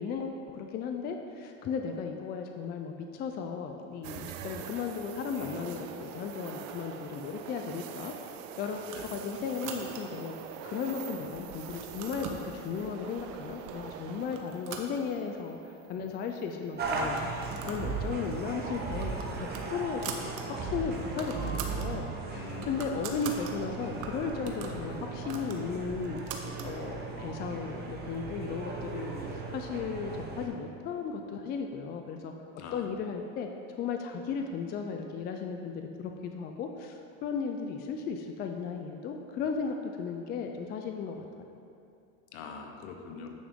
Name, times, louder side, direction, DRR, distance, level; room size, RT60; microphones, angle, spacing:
voice 1, 0.0-10.4 10.6-17.2 17.6-19.1 19.4-20.1 20.6-26.2 26.6-32.3 32.7-33.5 33.8-41.2, left 5 dB, 25° left, 4 dB, 0.4 m, -35 dB
sound 1, 4.0-17.1 17.5-17.6 20.0-20.4, right 8 dB, 70° right, 0.7 m, -44 dB
voice 2, 5.3-5.8 9.0-9.1 22.3-22.9 32.6-32.9 42.3-43.3, left 5 dB, 65° left, 4 dB, 1.1 m, -43 dB
sound 2, 8.8-10.3 10.8-11.3 11.6-12.5 13.2-13.3 13.7-14.0 14.3-15.5 15.9-16.0 16.2-16.3 17.0-17.9 18.2-18.4 18.8-20.4 20.8-20.9 21.1-21.9 22.3-23.5 24.0-26.7, right 6 dB, 50° right, 1.0 m, -43 dB
sound 3, 16.8-30.5, right 4 dB, 25° right, 1.2 m, -37 dB
9.8 x 5.8 x 3.7 m, 2.5 s
supercardioid pair, 130°, 39 cm